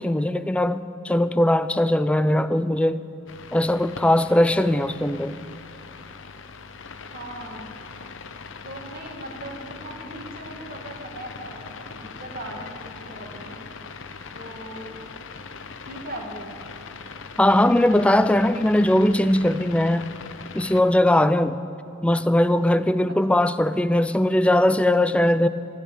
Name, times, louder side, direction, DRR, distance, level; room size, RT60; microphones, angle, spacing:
voice 1, 0.0-3.0 3.5-5.4 17.4-20.1 20.5-21.6 22.0-25.5, left 1 dB, 5° left, 12 dB, 0.3 m, -20 dB
sound 1, 3.3-20.8, left 5 dB, 60° left, 0.7 m, -40 dB
voice 2, 7.1-7.7 8.6-13.6 14.3-15.0 15.8-16.5 23.1-23.2, right 1 dB, 45° right, 1 dB, 2.1 m, -39 dB
14.5 x 10.5 x 7.0 m, 2.8 s
head